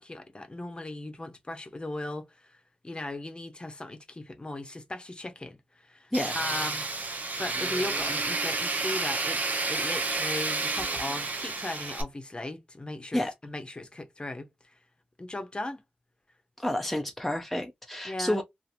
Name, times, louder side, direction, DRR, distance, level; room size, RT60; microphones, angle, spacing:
voice 1, 0.0-2.6 2.8-6.9 7.4-9.4 9.7-14.5 15.2-15.8 18.0-18.4, left 2 dB, 30° left, 0.8 m, -37 dB
Tools, 6.1-12.0, right 3 dB, 60° right, 0.8 m, -30 dB
voice 2, 16.6-18.4, left 1 dB, 5° left, 0.5 m, -29 dB
2.8 x 2.6 x 2.5 m
cardioid pair, 60°, 3 cm